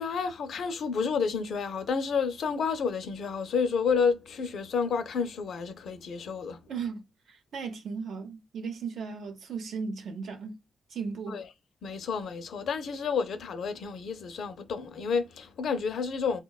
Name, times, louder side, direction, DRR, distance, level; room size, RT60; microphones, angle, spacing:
voice 1, 0.0-6.6 11.3-11.4 11.8-16.4, left 5 dB, 70° left, 0.5 m, -30 dB
voice 2, 6.7-10.6 10.9-11.4, right 5 dB, 70° right, 0.6 m, -36 dB
3.7 x 2.2 x 2.3 m
cardioid pair, 115°, 0 cm